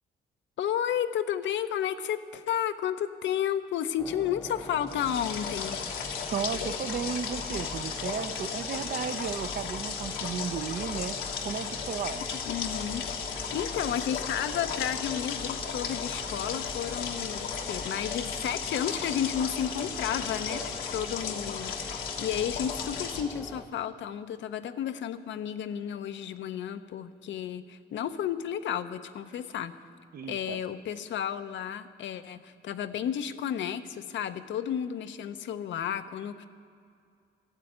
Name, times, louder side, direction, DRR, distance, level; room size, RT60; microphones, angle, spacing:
voice 1, 0.6-5.8 12.4-13.1 13.5-29.7 30.3-36.5, left 9 dB, 70° left, 10 dB, 0.7 m, -32 dB
sound 1, 4.0-23.7, left 2 dB, 10° left, 0.7 m, -43 dB
sound 2, 4.9-23.2, left 6 dB, 85° left, 1.4 m, -35 dB
voice 2, 6.3-11.2 11.4-12.3 20.5-20.7 30.1-30.6, right 7 dB, 50° right, 12 dB, 0.6 m, -34 dB
12.5 x 7.6 x 9.2 m, 2.3 s
cardioid pair, 90°, 20 cm